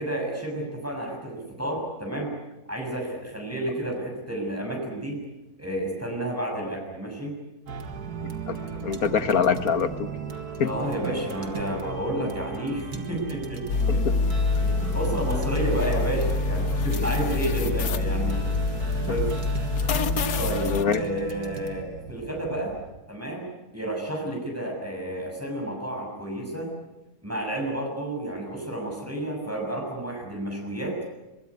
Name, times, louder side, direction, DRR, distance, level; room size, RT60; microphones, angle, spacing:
voice 1, 0.0-2.3 2.7-5.2 5.6-7.3 10.6-14.0 14.5-18.6 19.1-19.3 20.4-22.7 23.1-26.7 27.2-31.0, right 1 dB, 10° right, 0 dB, 6.5 m, -31 dB
sound 1, 7.7-23.0, right 5 dB, 80° right, 2.4 m, -35 dB
voice 2, 8.2-10.1 10.6-10.7 12.2-12.3 14.1-14.2 20.7-21.0, left 6 dB, 70° left, 11 dB, 1.8 m, -25 dB
sound 2, 13.7-20.8, left 4 dB, 90° left, 1.7 m, -26 dB
23.5 x 22.5 x 9.6 m, 1.0 s
omnidirectional pair, 1.6 m